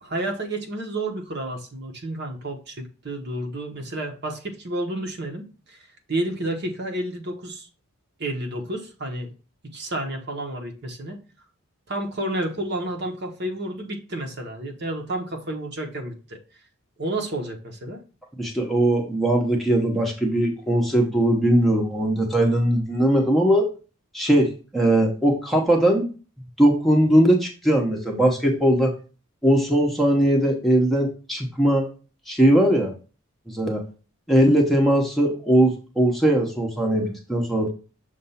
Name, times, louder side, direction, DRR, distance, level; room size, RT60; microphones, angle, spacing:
voice 1, 0.0-7.7 8.2-9.3 9.6-11.2 11.9-16.4 17.0-18.0, right 1 dB, 50° right, 2 dB, 1.1 m, -30 dB
voice 2, 18.4-23.7 24.1-26.1 26.6-28.9 29.4-31.9 32.3-32.9 33.5-33.8 34.3-37.7, right 1 dB, ahead, -1 dB, 0.9 m, -20 dB
6.6 x 2.6 x 5.6 m, 0.34 s
head